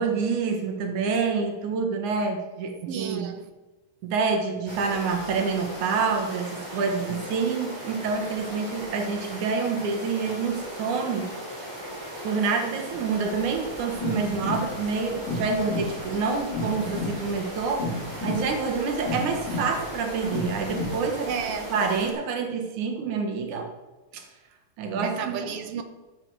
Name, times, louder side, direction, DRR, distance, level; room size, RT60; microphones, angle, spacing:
voice 1, 0.0-3.3 4.0-11.3 11.6-11.9 12.2-21.3 21.7-23.7 24.1-24.3 24.8-25.5, right 5 dB, 90° right, 2.8 m, -27 dB
voice 2, 2.9-3.5 21.2-21.7 25.0-25.8, right 7 dB, 70° right, 1.5 m, -32 dB
sound 1, 4.7-22.1, equal, 10° right, 4.1 m, -38 dB
sound 2, 13.6-21.5, left 2 dB, 60° left, 3.4 m, -33 dB
13.5 x 7.8 x 4.7 m
omnidirectional pair, 3.3 m